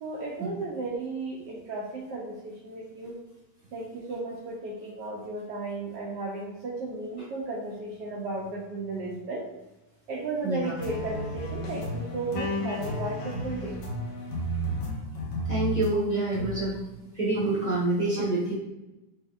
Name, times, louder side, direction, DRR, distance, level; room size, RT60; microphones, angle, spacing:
voice 1, 0.0-3.2 3.7-9.4 10.1-13.8, right 2 dB, 75° right, -4 dB, 1.3 m, -34 dB
voice 2, 10.4-10.7 15.4-16.8 17.1-18.5, right 2 dB, 30° right, -7 dB, 0.9 m, -27 dB
sound 1, 10.8-15.9 16.3-16.7, right 1 dB, 90° left, 1.6 m, -32 dB
4.2 x 3.3 x 2.4 m, 0.97 s
omnidirectional pair, 1.9 m